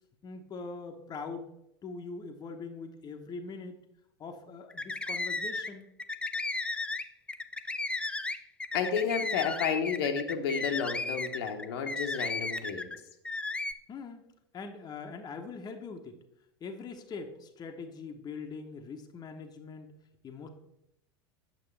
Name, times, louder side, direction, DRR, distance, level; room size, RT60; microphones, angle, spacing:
voice 1, 0.2-1.5 1.8-3.8 4.2-5.9 13.9-14.2 14.5-16.2 16.6-19.9 20.2-20.5, left 4 dB, 30° left, 4 dB, 0.9 m, -42 dB
sound 1, 4.7-5.7 6.0-13.0 13.2-13.7, left 3 dB, 10° left, 0.4 m, -34 dB
voice 2, 8.7-12.9, left 6 dB, 65° left, 4 dB, 1.0 m, -31 dB
8.6 x 6.5 x 3.3 m, 0.80 s
figure-of-eight pair, 80°, 14 cm